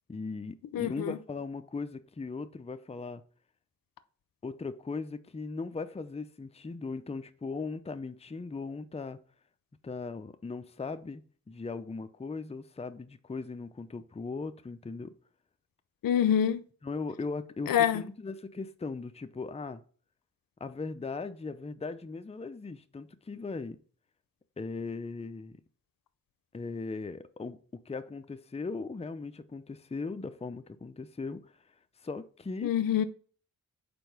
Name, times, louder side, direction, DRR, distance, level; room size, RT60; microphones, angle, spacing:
voice 1, 0.1-3.2 4.4-9.2 9.8-11.2 11.5-15.2 16.8-19.8 20.6-23.8 24.6-25.6 26.5-31.6 32.0-32.7, left 4 dB, 20° left, 0.6 m, -38 dB
voice 2, 0.7-1.2 16.0-16.6 17.7-18.0 32.6-33.0, left 9 dB, 85° left, 0.6 m, -26 dB
5.2 x 4.4 x 6.0 m
cardioid pair, 55°, 33 cm